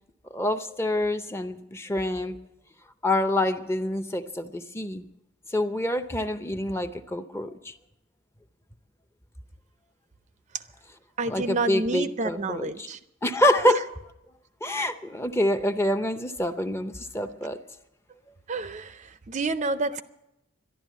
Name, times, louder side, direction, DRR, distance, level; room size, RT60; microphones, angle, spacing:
voice 1, 0.3-2.4 3.0-5.0 5.5-7.7 11.3-12.9 13.2-13.8 14.6-17.6, left 1 dB, 10° left, 9 dB, 0.6 m, -26 dB
voice 2, 11.2-13.0 13.6-13.8 18.5-20.0, right 3 dB, 35° right, 12 dB, 0.5 m, -29 dB
12.5 x 11.5 x 9.2 m, 0.86 s
head